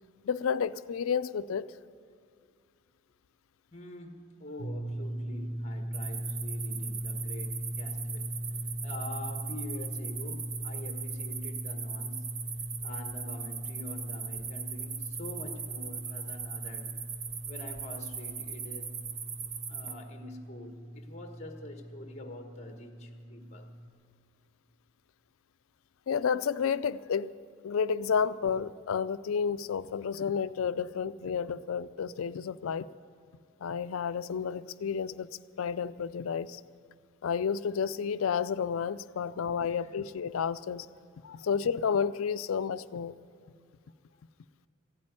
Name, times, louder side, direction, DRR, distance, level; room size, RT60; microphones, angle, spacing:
voice 1, 0.2-1.7 26.1-27.3 27.6-32.9 33.6-35.3 35.6-36.6 37.2-40.9 41.2-43.2, left 6 dB, 80° left, 15 dB, 0.4 m, -31 dB
voice 2, 3.7-8.3 8.8-12.2 12.8-16.9 17.5-19.0 19.7-23.7 39.6-40.0 41.4-41.5, left 1 dB, 30° left, 5 dB, 1.3 m, -46 dB
sound 1, 4.6-23.9, equal, 65° right, 1.0 m, -40 dB
sound 2, 5.9-19.9, right 6 dB, 30° right, 0.6 m, -40 dB
15.0 x 8.7 x 9.7 m, 2.1 s
head